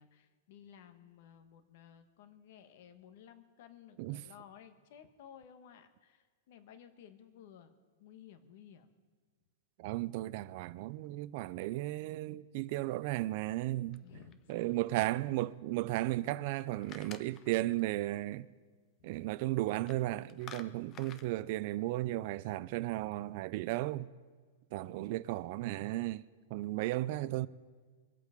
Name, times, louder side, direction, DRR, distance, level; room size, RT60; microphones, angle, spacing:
voice 1, 0.0-7.7 8.0-8.9 14.0-14.9 19.0-19.1 24.7-25.2, left 9 dB, 50° left, 1.4 m, -56 dB
voice 2, 9.8-14.0 14.5-18.5 19.0-24.1 24.7-26.2 26.5-27.5, right 17 dB, 45° right, 0.4 m, -35 dB
sound 1, 13.9-14.8 16.3-17.8 19.7-20.0 20.3-21.3, left 8 dB, 25° left, 0.7 m, -52 dB
24.0 x 8.3 x 5.1 m
supercardioid pair, 160°, 0 cm